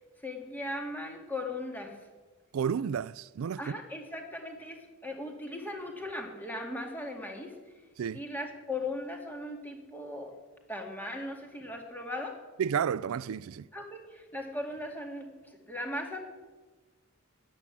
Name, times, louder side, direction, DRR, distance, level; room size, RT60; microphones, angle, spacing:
voice 1, 0.2-2.0 3.6-7.6 8.1-10.3 10.7-12.4 13.7-16.2, left 1 dB, 10° left, 2.1 m, -38 dB
voice 2, 2.5-3.8 8.0-8.2 12.6-13.7, right 7 dB, 75° right, 0.4 m, -31 dB
13.5 x 10.5 x 8.2 m
head